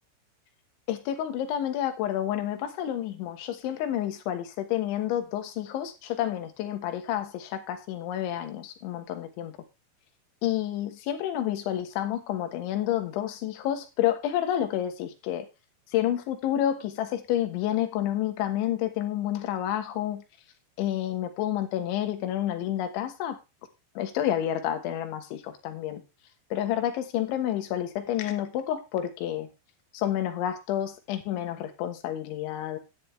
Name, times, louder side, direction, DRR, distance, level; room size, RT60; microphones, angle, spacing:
voice 1, 0.9-9.6 10.4-15.5 15.9-20.2 20.8-23.4 24.0-26.0 26.5-29.5 29.9-32.8, left 11 dB, 90° left, 8 dB, 3.8 m, -29 dB
12.5 x 9.6 x 3.3 m, 0.26 s
omnidirectional pair, 5.2 m